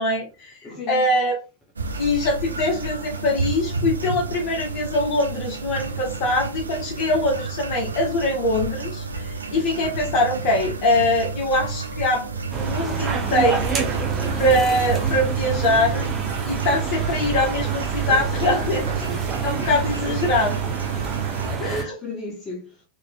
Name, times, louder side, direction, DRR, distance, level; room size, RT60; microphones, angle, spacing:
voice 1, 0.0-0.5 0.9-1.3 2.0-13.8 14.4-16.1 16.4-18.8 19.4-20.5 21.6-21.8, left 1 dB, 40° left, 1.5 m, -23 dB
voice 2, 0.6-1.0 19.9-20.7 21.7-22.8, left 2 dB, 15° left, 1.3 m, -35 dB
sound 1, 1.8-21.6, right 4 dB, 75° right, 0.5 m, -31 dB
sound 2, 12.5-21.8, right 5 dB, 20° right, 1.0 m, -27 dB
4.2 x 3.2 x 2.4 m
figure-of-eight pair, 90°, 0 cm